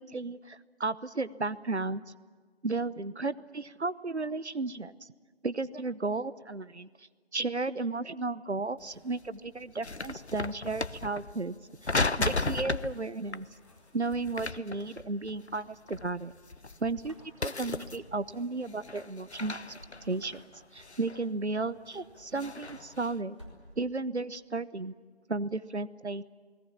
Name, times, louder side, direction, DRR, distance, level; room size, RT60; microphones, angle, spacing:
voice 1, 0.0-2.0 2.6-5.1 5.4-11.5 11.8-11.9 12.2-13.5 13.9-16.3 16.8-19.6 20.0-20.4 20.7-23.4 23.8-24.9 25.3-26.2, right 3 dB, 85° right, 17 dB, 0.9 m, -34 dB
sound 1, 8.8-8.9 9.2-11.4 11.8-13.0 13.3-13.4 14.1-15.6 15.9-17.2 17.4-18.3 18.6-21.2 21.8-23.1, left 3 dB, 85° left, 0.9 m, -35 dB
sound 2, 13.2-14.4 16.4-18.3 19.7-20.9 22.0-24.0, left 1 dB, 25° right, 4.2 m, -56 dB
29.0 x 19.5 x 7.2 m, 1.5 s
figure-of-eight pair, 180°, 33 cm